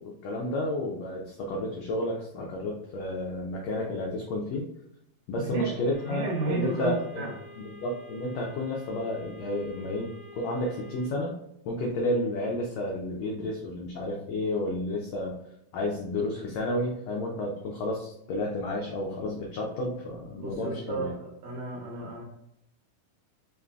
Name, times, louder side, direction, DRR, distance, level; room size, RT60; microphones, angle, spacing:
voice 1, 0.0-4.7 5.3-7.3 7.6-11.3 11.7-15.4 15.7-21.1, left 1 dB, 90° left, -1 dB, 1.5 m, -31 dB
voice 2, 5.4-5.7 6.1-7.3 20.4-22.2, right 2 dB, 75° right, -2 dB, 1.7 m, -32 dB
sound 1, 5.9-11.1, left 1 dB, 55° left, 2.1 m, -49 dB
5.2 x 3.2 x 2.3 m, 0.81 s
omnidirectional pair, 3.8 m